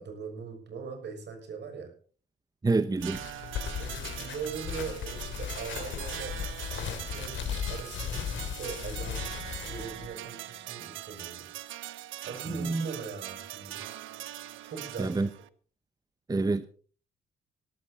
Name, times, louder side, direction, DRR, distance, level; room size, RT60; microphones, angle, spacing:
voice 1, 0.0-1.9 3.8-6.4 6.7-11.5 12.3-13.8 14.6-15.3, right 5 dB, 60° right, 6.7 m, -41 dB
voice 2, 2.6-3.2 12.6-12.9 15.0-15.3 16.3-16.6, right 3 dB, 20° right, 0.9 m, -27 dB
sound 1, 3.0-10.1, left 8 dB, 75° left, 2.8 m, -37 dB
sound 2, 3.0-15.5, right 14 dB, 85° right, 0.9 m, -42 dB
17.5 x 13.5 x 4.2 m
cardioid pair, 90°, 20 cm